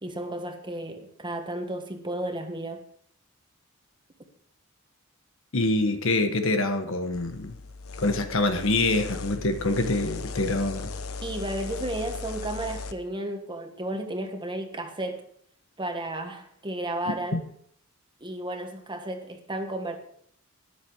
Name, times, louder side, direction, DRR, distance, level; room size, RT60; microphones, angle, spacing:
voice 1, 0.0-2.8 11.2-15.2 15.8-17.4 18.2-20.0, right 1 dB, 20° right, 5 dB, 1.5 m, -33 dB
voice 2, 5.5-7.6 8.0-10.9 17.3-17.4, left 2 dB, 65° left, 7 dB, 1.4 m, -25 dB
sound 1, 7.1-12.9, left 4 dB, 90° left, 1.0 m, -37 dB
13.0 x 10.5 x 4.7 m, 0.65 s
head